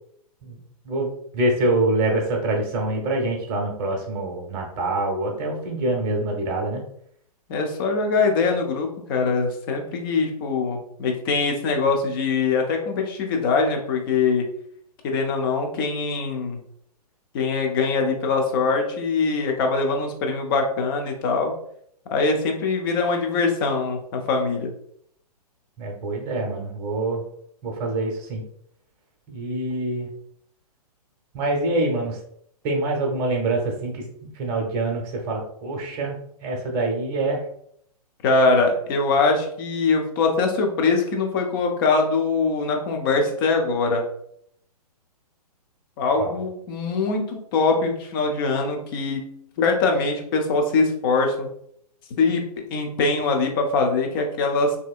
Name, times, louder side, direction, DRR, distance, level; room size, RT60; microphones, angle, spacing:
voice 1, 0.8-6.8 25.8-27.2 27.6-28.4 29.3-30.1 31.3-32.2 32.6-36.2 36.4-37.4 46.2-46.4, right 2 dB, 30° right, 1 dB, 0.8 m, -25 dB
voice 2, 7.5-14.4 15.0-16.6 17.3-21.5 22.1-24.7 38.2-44.1 46.0-49.3 49.6-51.5 52.2-52.4 52.7-54.8, left 4 dB, 35° left, 3 dB, 0.6 m, -22 dB
3.3 x 2.7 x 2.4 m, 0.69 s
figure-of-eight pair, 120°, 20 cm